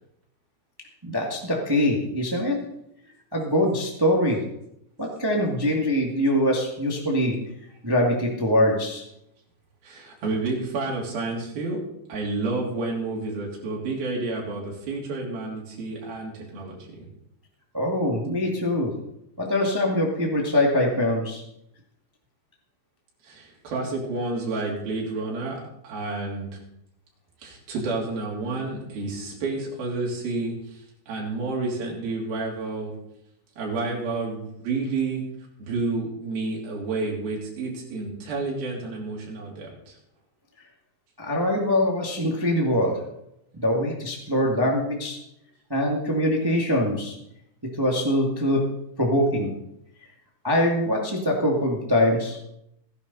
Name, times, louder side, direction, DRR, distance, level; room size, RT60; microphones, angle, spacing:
voice 1, 1.0-2.6 3.3-4.4 5.0-7.4 7.8-9.0 17.7-18.9 19.4-21.4 41.2-43.0 43.6-45.2 45.7-47.1 47.8-48.7 49.0-49.5 50.4-52.4, left 1 dB, 40° right, -1 dB, 0.3 m, -23 dB
voice 2, 9.8-11.8 12.1-17.1 23.2-26.5 27.4-32.9 33.6-35.2 35.6-40.0, right 3 dB, 65° right, -3 dB, 4.9 m, -30 dB
17.0 x 11.0 x 4.1 m, 0.79 s
omnidirectional pair, 4.5 m